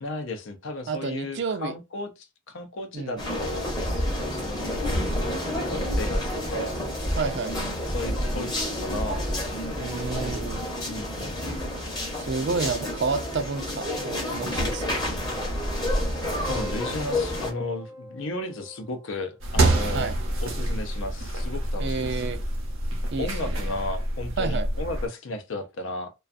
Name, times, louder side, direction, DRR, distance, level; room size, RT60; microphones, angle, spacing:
voice 1, 0.0-6.8 7.8-8.5 8.8-9.2 10.8-11.4 16.5-20.1 20.4-22.2 23.2-26.1, left 2 dB, 65° left, 0.5 m, -34 dB
voice 2, 0.9-1.7 2.9-3.2 7.2-7.6 9.8-10.6 12.1-15.1 19.9-20.1 21.8-22.4 23.1-23.7 24.4-24.7, right 4 dB, 55° right, 0.4 m, -30 dB
sound 1, 3.2-17.5, left 1 dB, 20° left, 0.8 m, -29 dB
Keyboard (musical), 16.4-21.4, equal, 10° right, 0.6 m, -45 dB
sound 2, 19.4-25.1, right 1 dB, 75° right, 0.8 m, -27 dB
2.4 x 2.3 x 2.4 m
head